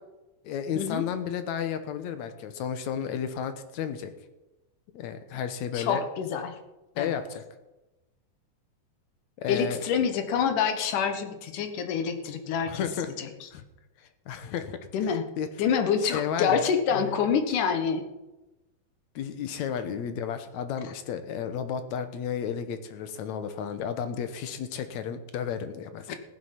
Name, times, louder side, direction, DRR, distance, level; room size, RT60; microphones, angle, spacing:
voice 1, 0.4-4.1 4.9-6.0 7.0-7.4 9.4-9.8 12.7-13.1 13.5-13.6 14.3-14.8 15.1-15.5 16.1-17.2 19.2-26.1, left 8 dB, 70° left, 10 dB, 2.3 m, -32 dB
voice 2, 5.7-6.6 7.0-7.2 9.5-12.8 13.2-13.3 14.9-15.3 15.6-18.0 26.1-26.2, left 7 dB, 90° left, 7 dB, 2.8 m, -26 dB
15.0 x 11.0 x 5.8 m, 1.0 s
omnidirectional pair, 3.5 m